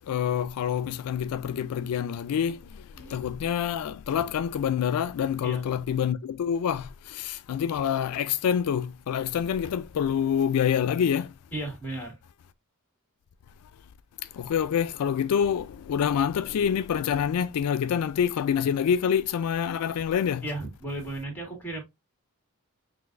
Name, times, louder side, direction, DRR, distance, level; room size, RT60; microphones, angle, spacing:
voice 1, 0.1-11.3 14.3-20.4, left 8 dB, 80° left, 0.3 m, -27 dB
voice 2, 5.4-5.8 11.5-12.2 20.4-21.8, right 2 dB, 10° left, 1.8 m, -35 dB
5.9 x 2.5 x 2.4 m
head